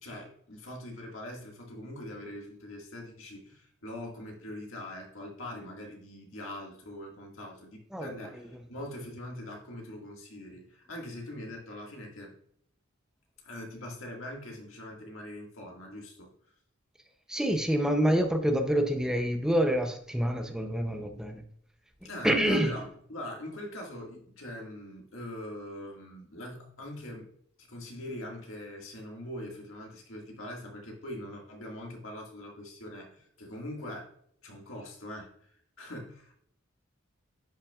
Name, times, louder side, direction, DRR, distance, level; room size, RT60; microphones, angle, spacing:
voice 1, 0.0-12.3 13.4-16.3 22.0-27.2 27.6-34.1 34.4-35.3 35.8-36.3, left 1 dB, 75° left, 0 dB, 1.9 m, -42 dB
voice 2, 17.3-21.4 22.2-22.7, equal, 5° right, 5 dB, 0.5 m, -27 dB
10.0 x 5.7 x 2.4 m, 0.66 s
head